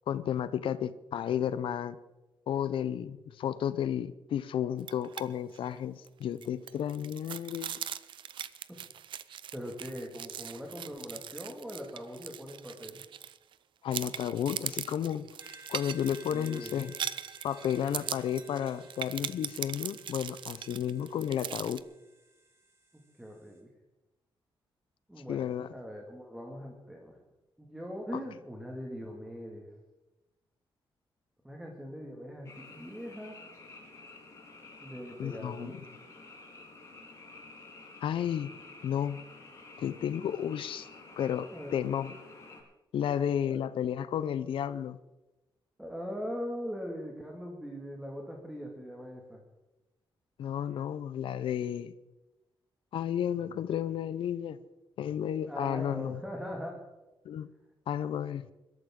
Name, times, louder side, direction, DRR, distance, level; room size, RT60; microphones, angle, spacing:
voice 1, 0.1-2.0 2.5-7.8 13.8-15.3 15.7-16.9 17.4-21.8 25.3-25.7 35.2-35.8 38.0-38.5 38.8-39.2 39.8-40.9 41.2-42.1 42.9-45.0 50.4-51.9 52.9-54.6 55.0-56.2 57.3-57.5 57.9-58.5, left 9 dB, 75° left, 14 dB, 0.6 m, -32 dB
cutting croissant ST, 4.8-5.2 5.5-5.7 6.1-13.5 13.9-21.8, right 9 dB, 65° right, 0.6 m, -40 dB
voice 2, 9.5-13.0 16.3-16.9 23.1-23.7 25.1-27.2 27.6-29.8 31.4-33.4 34.8-35.7 41.5-41.7 43.5-43.6 45.8-49.4 55.4-56.8, equal, 5° right, 0 dB, 2.0 m, -41 dB
sound 1, 15.4-23.6, right 1 dB, 30° right, 2.9 m, -56 dB
Frog, 32.4-42.6, left 3 dB, 35° left, 4.4 m, -51 dB
21.5 x 13.0 x 3.7 m, 1.1 s
wide cardioid pair, 140°, 9 cm